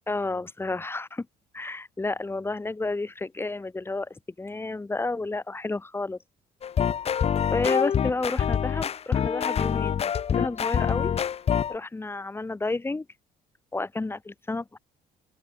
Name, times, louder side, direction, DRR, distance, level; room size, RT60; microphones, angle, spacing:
voice 1, 0.1-1.3 1.5-6.2 7.5-11.1 11.7-13.0 13.7-14.8, left 3 dB, 15° left, 1.5 m, -31 dB
sound 1, 6.6-11.7, left 8 dB, 40° left, 0.9 m, -25 dB
open air
cardioid pair, 115°, 16 cm